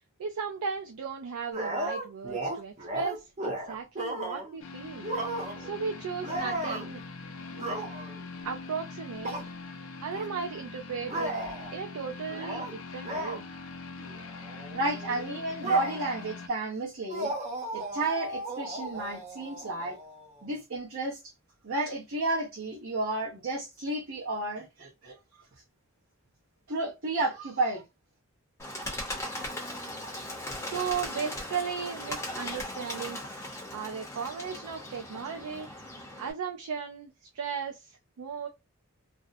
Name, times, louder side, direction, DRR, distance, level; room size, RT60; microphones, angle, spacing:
voice 1, 0.2-5.1 5.6-7.0 8.4-9.4 10.0-11.3 11.7-13.5 30.6-33.2 33.7-35.7 36.2-38.5, right 6 dB, 85° right, 0.4 m, -36 dB
sound 1, 1.5-4.6 5.0-5.8 6.2-6.9 7.5-8.2 9.2-9.5 10.1-10.3 11.1-11.7 12.3-12.7 13.0-13.4 14.0-14.2 14.4-16.3 17.1-20.4, right 1 dB, 30° right, 0.5 m, -35 dB
sound 2, 4.6-16.5, left 3 dB, 65° left, 0.4 m, -43 dB
voice 2, 14.7-17.3 17.7-20.0 20.4-21.3 21.6-25.1 26.7-27.8, right 2 dB, 65° right, 0.8 m, -31 dB
Bird, 28.6-36.3, left 1 dB, 10° left, 0.7 m, -38 dB
2.5 x 2.0 x 2.5 m
head